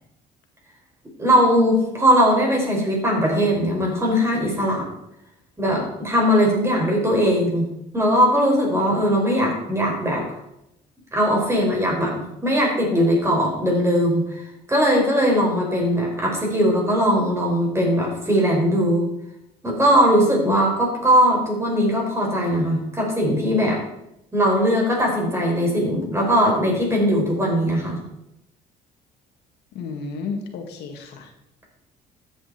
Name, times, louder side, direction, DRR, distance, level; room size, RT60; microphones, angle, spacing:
voice 1, 1.2-4.8 5.6-7.7 7.9-10.3 11.1-14.4 14.7-19.1 19.6-23.8 24.3-28.0, equal, 15° right, -1 dB, 5.3 m, -20 dB
voice 2, 29.7-31.3, left 5 dB, 80° left, 3 dB, 2.0 m, -32 dB
13.5 x 8.9 x 4.3 m, 0.83 s
cardioid pair, 110°, 17 cm